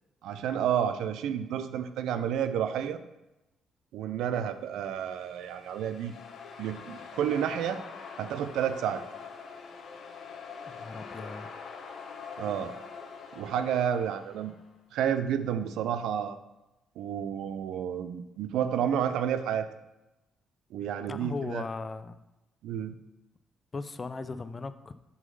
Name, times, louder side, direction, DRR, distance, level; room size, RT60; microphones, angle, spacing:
voice 1, 0.2-3.0 3.9-6.1 6.6-7.8 8.2-9.0 12.4-12.7 13.4-14.5 14.9-16.4 17.0-19.7 20.7-21.6 22.6-22.9, right 9 dB, 85° right, 11 dB, 0.4 m, -30 dB
sound 1, 4.9-14.7, left 5 dB, 65° left, 0.8 m, -44 dB
voice 2, 10.7-11.5 21.1-22.2 23.7-24.9, left 3 dB, 30° left, 12 dB, 0.4 m, -37 dB
6.1 x 3.9 x 5.4 m, 0.98 s
cardioid pair, 90°, 0 cm